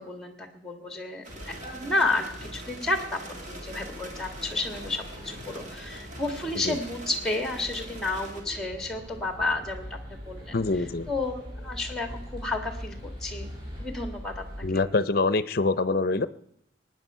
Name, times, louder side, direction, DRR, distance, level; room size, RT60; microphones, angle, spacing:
voice 1, 0.0-3.2 3.5-10.6 11.1-13.5 13.8-14.6, left 2 dB, ahead, 5 dB, 1.8 m, -31 dB
sound 1, 1.2-8.4, right 1 dB, 40° right, 2.4 m, -44 dB
sound 2, 1.3-14.7, equal, 25° right, 8.0 m, -42 dB
voice 2, 10.5-11.1 14.6-16.3, left 3 dB, 50° left, 15 dB, 0.6 m, -25 dB
23.0 x 9.6 x 5.6 m, 0.79 s
head